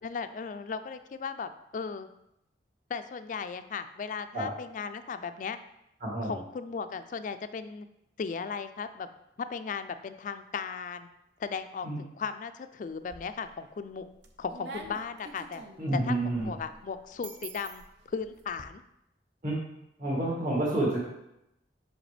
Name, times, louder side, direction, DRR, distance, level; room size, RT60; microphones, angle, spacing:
voice 1, 0.0-2.1 2.9-5.6 6.2-7.9 8.2-9.1 9.4-11.1 11.4-14.1 14.4-15.7 15.9-18.8, left 5 dB, 45° left, 10 dB, 0.3 m, -36 dB
voice 2, 6.0-6.4 11.8-12.0 15.8-16.5 19.4-19.6 20.0-21.0, right 1 dB, 45° right, -5 dB, 1.7 m, -29 dB
sound 1, 12.9-13.6 14.0-18.6, right 3 dB, 70° right, 0.6 m, -46 dB
5.7 x 5.0 x 3.3 m, 0.84 s
head